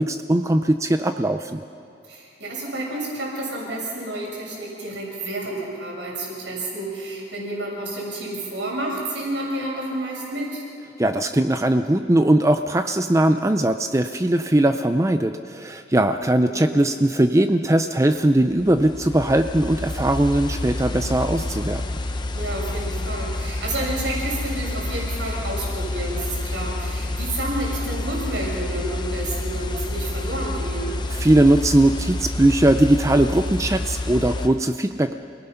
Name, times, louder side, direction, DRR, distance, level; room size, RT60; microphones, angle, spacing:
voice 1, 0.0-1.7 11.0-21.8 31.1-35.2, right 1 dB, 15° right, 8 dB, 0.4 m, -20 dB
voice 2, 2.1-10.6 16.4-16.7 22.3-30.9, right 1 dB, 70° right, -3 dB, 6.9 m, -30 dB
sound 1, 18.4-34.5, left 2 dB, 20° left, 0.8 m, -29 dB
28.5 x 18.5 x 5.7 m, 2.7 s
head